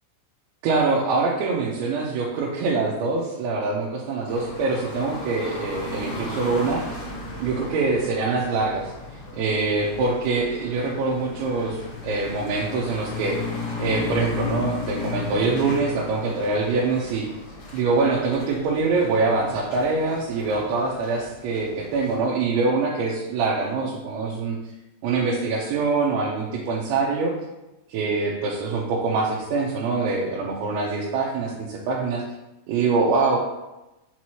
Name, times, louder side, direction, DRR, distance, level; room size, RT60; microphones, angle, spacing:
voice 1, 0.6-6.8 7.4-8.9 9.3-11.8 12.0-17.3 17.7-24.6 25.0-27.3 27.9-32.2 32.7-33.4, right 3 dB, 80° right, -5 dB, 3.0 m, -24 dB
sound 1, 4.3-22.1, left 4 dB, 85° left, 1.5 m, -35 dB
7.1 x 4.6 x 2.9 m, 0.99 s
omnidirectional pair, 5.3 m